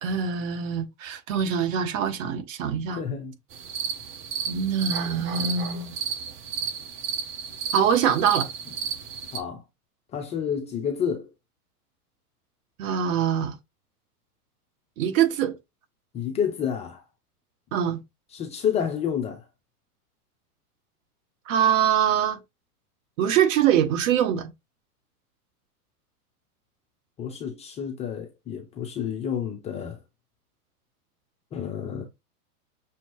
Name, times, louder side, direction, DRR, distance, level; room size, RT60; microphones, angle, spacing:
voice 1, 0.0-3.0 4.5-5.9 7.7-8.5 12.8-13.6 15.0-15.5 17.7-18.0 21.5-22.4 23.2-24.5, right 8 dB, 55° right, 1.2 m, -23 dB
voice 2, 2.9-3.3 9.3-9.6 10.1-11.3 16.1-17.0 18.3-19.4 27.2-30.0 31.5-32.0, left 8 dB, 15° left, 0.4 m, -29 dB
sound 1, 3.5-9.4, right 7 dB, 25° right, 0.8 m, -33 dB
6.1 x 2.8 x 3.0 m
hypercardioid pair, 110°, 46 cm